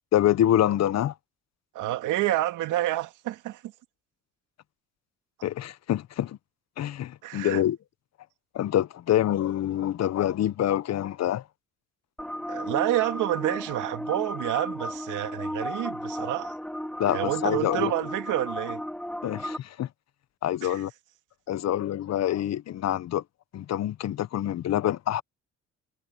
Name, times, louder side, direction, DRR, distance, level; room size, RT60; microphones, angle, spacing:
voice 1, 0.1-1.1 5.4-6.4 6.8-7.8 8.5-11.4 17.0-17.9 19.2-19.9 20.4-20.9 21.5-23.2 23.5-25.2, left 12 dB, 60° left, 0.8 m, -26 dB
voice 2, 1.7-3.7 7.2-7.6 12.5-16.6 17.1-18.8 20.6-20.8, right 15 dB, 90° right, 2.1 m, -29 dB
sound 1, 12.2-19.6, equal, 5° left, 2.8 m, -34 dB
cardioid pair, 90°, 30 cm